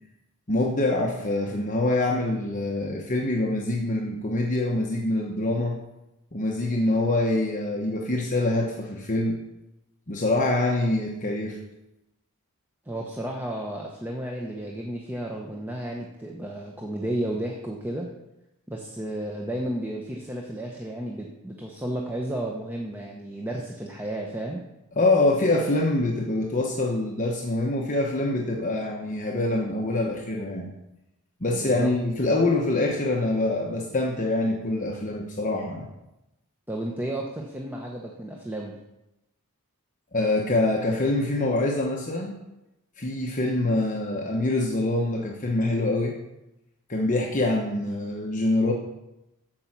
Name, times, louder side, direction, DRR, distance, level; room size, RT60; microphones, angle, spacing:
voice 1, 0.5-5.8 6.3-9.4 10.1-11.6 25.0-30.7 31.4-35.9 40.1-42.4 43.0-46.1 46.9-48.7, left 2 dB, 35° left, -1 dB, 1.1 m, -25 dB
voice 2, 12.8-18.1 18.7-24.6 31.5-31.9 36.7-38.8, right 1 dB, 10° right, -1 dB, 0.9 m, -32 dB
14.0 x 5.4 x 6.0 m, 0.93 s
head